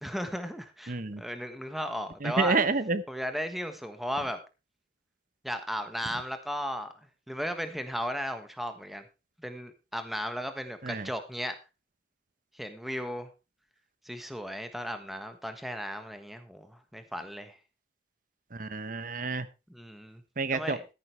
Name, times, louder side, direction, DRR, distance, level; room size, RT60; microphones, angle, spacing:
voice 1, 0.0-2.6 3.1-4.4 5.4-6.9 7.3-9.1 9.4-11.5 12.5-13.3 14.0-17.6 19.7-20.2 20.5-20.9, equal, ahead, 8 dB, 1.3 m, -35 dB
voice 2, 0.9-1.2 2.2-3.0 10.8-11.1 18.5-19.5 20.4-20.8, right 3 dB, 45° right, 14 dB, 1.0 m, -29 dB
13.5 x 11.0 x 3.3 m, 0.28 s
head